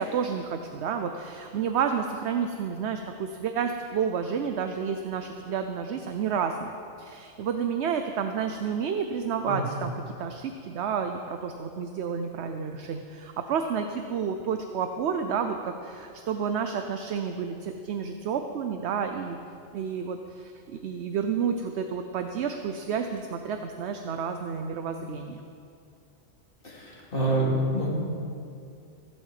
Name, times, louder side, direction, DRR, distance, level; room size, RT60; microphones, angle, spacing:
voice 1, 0.0-6.7 7.0-19.4 19.7-25.4, right 6 dB, 65° right, 6 dB, 0.9 m, -30 dB
voice 2, 26.6-27.9, right 1 dB, 45° left, -4 dB, 2.9 m, -27 dB
15.0 x 7.8 x 7.5 m, 2.5 s
omnidirectional pair, 1.3 m